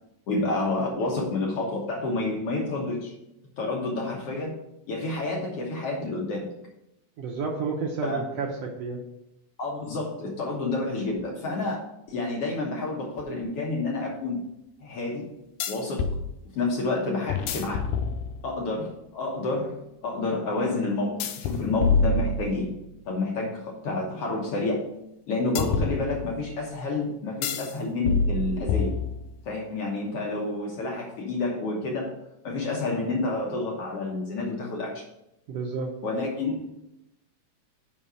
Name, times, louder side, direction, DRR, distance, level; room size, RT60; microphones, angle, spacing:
voice 1, 0.3-3.1 3.6-4.5 4.9-6.5 8.0-8.2 9.6-11.8 12.1-14.4 14.8-15.3 15.7-16.1 16.5-17.9 18.4-19.8 20.0-22.7 23.1-24.9 25.3-28.9 29.4-32.1 32.4-35.0 36.0-36.8, left 2 dB, 60° left, -2 dB, 1.8 m, -29 dB
voice 2, 7.2-9.0 35.5-35.9, right 4 dB, 70° right, 0 dB, 1.7 m, -31 dB
sound 1, 13.2-13.3 15.6-16.2 17.3-18.6 21.2-22.9 25.6-26.6 27.4-27.7 28.1-29.4, left 4 dB, 85° left, 2.2 m, -27 dB
5.5 x 5.4 x 6.2 m, 0.85 s
omnidirectional pair, 3.5 m